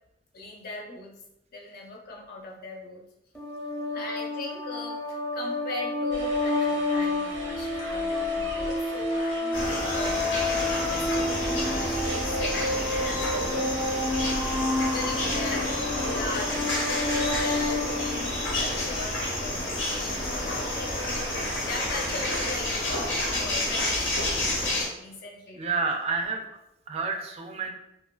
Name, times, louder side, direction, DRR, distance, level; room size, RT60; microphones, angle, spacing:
voice 1, 0.3-1.1 1.5-3.0 3.9-13.8 14.8-15.7 16.0-21.3 21.7-25.9, left 2 dB, 50° left, -1 dB, 0.6 m, -39 dB
sound 1, 3.3-18.8, left 2 dB, 5° left, 0.6 m, -29 dB
sound 2, 6.1-22.6, right 2 dB, 90° right, 0.6 m, -41 dB
sound 3, 9.5-24.9, left 1 dB, 90° left, 0.8 m, -29 dB
voice 2, 15.2-15.6 25.6-26.4 26.9-27.7, right 4 dB, 35° right, 3 dB, 0.3 m, -30 dB
2.9 x 2.3 x 2.2 m, 0.83 s
head